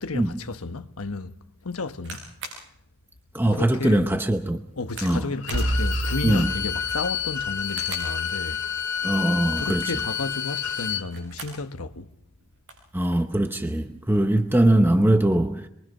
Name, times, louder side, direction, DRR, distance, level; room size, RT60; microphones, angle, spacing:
voice 1, 0.0-1.3 1.6-2.3 3.5-4.1 4.8-8.6 9.5-12.1, left 3 dB, 80° left, 1.1 m, -32 dB
sound 1, 2.0-2.6 3.2-3.3 3.8-4.0 4.9-5.2 5.5-5.7 6.7-7.1 7.7-8.1 9.4-9.8 10.9-11.6 12.0-12.1 12.3-12.9 13.7-14.0, right 2 dB, 55° right, 6.8 m, -40 dB
voice 2, 3.3-4.6 5.0-5.3 6.2-6.5 9.0-9.9 12.9-15.7, right 1 dB, 10° right, 0.8 m, -21 dB
Bowed string instrument, 5.4-11.1, left 8 dB, 55° left, 1.8 m, -29 dB
sound 2, 5.5-7.6, right 1 dB, 80° right, 1.4 m, -28 dB
27.5 x 23.0 x 5.5 m
head